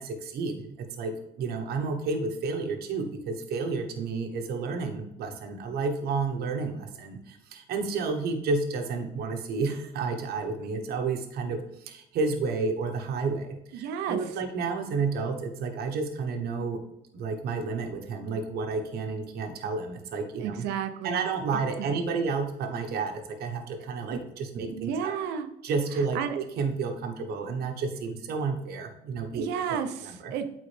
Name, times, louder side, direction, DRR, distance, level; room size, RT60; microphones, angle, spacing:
voice 1, 0.0-16.8 17.1-20.6 21.0-25.2 25.6-29.5 30.0-30.3, right 4 dB, 70° right, 4 dB, 1.0 m, -31 dB
voice 2, 13.7-14.2 20.4-22.3 24.6-25.5 26.1-26.4 29.3-30.6, right 8 dB, 90° right, 8 dB, 0.7 m, -32 dB
8.7 x 4.0 x 3.3 m, 0.80 s
cardioid pair, 110°, 17 cm